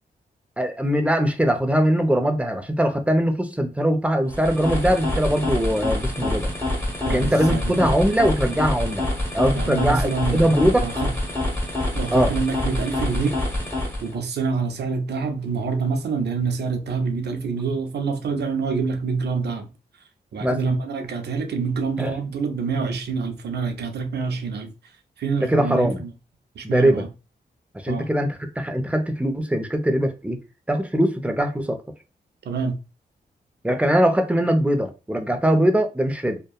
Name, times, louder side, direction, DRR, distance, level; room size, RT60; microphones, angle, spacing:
voice 1, 0.6-6.5 7.1-9.1 9.3-10.9 12.1-12.3 20.4-20.6 22.0-22.1 25.4-26.0 26.6-27.0 27.7-30.4 30.7-31.8 33.6-36.4, equal, 5° right, 0.6 m, -21 dB
sound 1, 4.3-14.2, left 1 dB, 15° left, 1.4 m, -26 dB
voice 2, 7.0-7.9 9.6-11.1 11.9-13.4 14.0-19.7 20.3-24.7 25.2-26.1 26.6-27.1 27.9-28.1 32.4-32.8, right 4 dB, 70° right, 0.5 m, -26 dB
2.7 x 2.2 x 2.3 m
cardioid pair, 45°, 18 cm